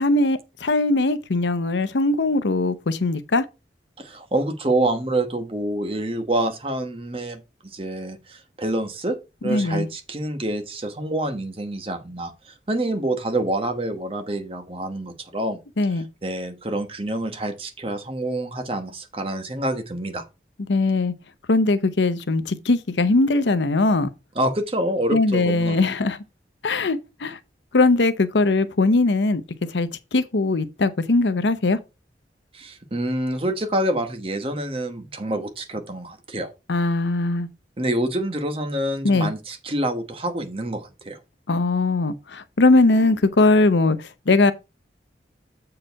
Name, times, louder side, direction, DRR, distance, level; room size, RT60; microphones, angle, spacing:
voice 1, 0.0-3.4 9.4-9.9 15.8-16.1 20.7-21.1 21.5-24.1 25.1-26.2 26.6-27.4 27.7-29.4 29.7-31.8 36.7-37.5 39.0-39.3 41.5-44.0 44.3-44.5, left 2 dB, 85° left, 0.7 m, -20 dB
voice 2, 4.0-7.4 7.7-9.2 9.4-15.6 15.9-20.3 24.3-25.9 32.5-36.5 37.8-41.2, right 1 dB, 30° right, 1.2 m, -27 dB
7.6 x 4.8 x 4.6 m
head